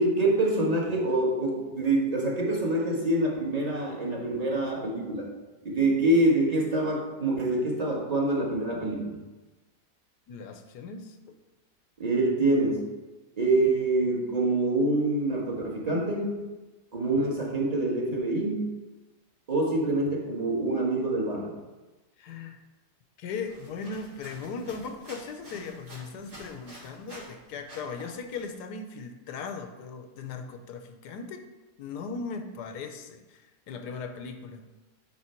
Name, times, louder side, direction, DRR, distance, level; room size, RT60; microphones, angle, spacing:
voice 1, 0.0-5.3 5.6-9.2 12.0-12.9 13.4-16.4 16.9-18.6 19.5-21.5, right 2 dB, 25° right, -2 dB, 1.3 m, -26 dB
voice 2, 10.3-11.3 22.2-22.6 23.2-31.4 31.8-34.6, left 5 dB, 90° left, 7 dB, 1.3 m, -38 dB
sound 1, 23.5-27.4 27.7-28.5, right 1 dB, 70° right, 3.3 m, -49 dB
9.0 x 3.7 x 4.4 m, 1.1 s
omnidirectional pair, 1.7 m